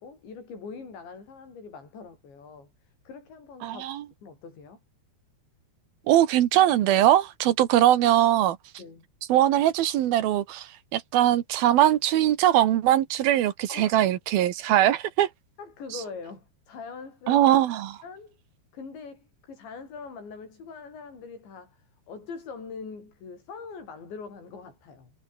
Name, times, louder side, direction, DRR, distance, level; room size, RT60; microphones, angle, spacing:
voice 1, 0.0-3.8 4.2-4.8 8.8-9.1 13.7-14.0 15.6-17.4 18.0-18.4 18.7-25.1, left 5 dB, 65° left, 10.0 m, -42 dB
voice 2, 3.6-4.0 6.1-8.6 9.3-15.3 17.3-18.0, right 12 dB, 65° right, 2.7 m, -21 dB
omnidirectional pair, 5.5 m